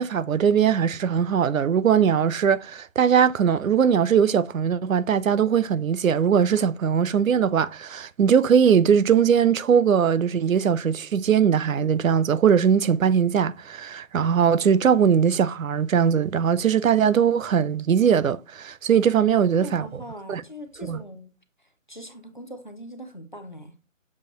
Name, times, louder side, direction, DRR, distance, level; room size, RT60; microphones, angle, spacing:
voice 1, 0.0-19.9 20.3-20.4 20.8-21.0, right 7 dB, 80° right, 0.5 m, -20 dB
voice 2, 19.5-21.3 21.9-23.7, equal, 40° left, 0.6 m, -41 dB
6.9 x 2.6 x 2.9 m
figure-of-eight pair, 175°, 40 cm